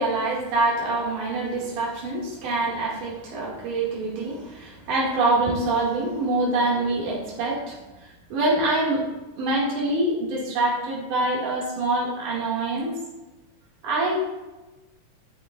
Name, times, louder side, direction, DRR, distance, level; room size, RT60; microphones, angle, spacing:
voice 1, 0.0-7.8 8.3-9.0 9.4-12.9 13.8-14.2, right 2 dB, 70° right, -5 dB, 3.6 m, -25 dB
11.5 x 8.4 x 2.5 m, 1.1 s
omnidirectional pair, 3.7 m